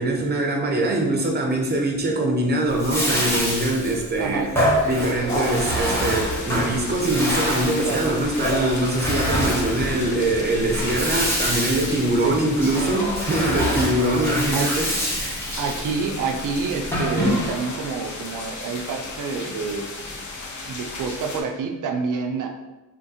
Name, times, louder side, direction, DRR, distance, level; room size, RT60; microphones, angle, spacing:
voice 1, 0.0-15.4, right 1 dB, 30° right, 1 dB, 0.7 m, -23 dB
Bathtub (filling or washing), 2.7-17.8, equal, 10° left, 1.2 m, -26 dB
voice 2, 4.2-4.7 7.8-8.1 12.2-12.4 14.5-14.7 15.6-19.9 20.6-22.5, right 4 dB, 75° right, 4 dB, 0.5 m, -27 dB
sound 1, 5.3-21.4, left 3 dB, 65° left, 0.7 m, -35 dB
3.6 x 2.5 x 2.7 m, 1.1 s
cardioid pair, 75°, 32 cm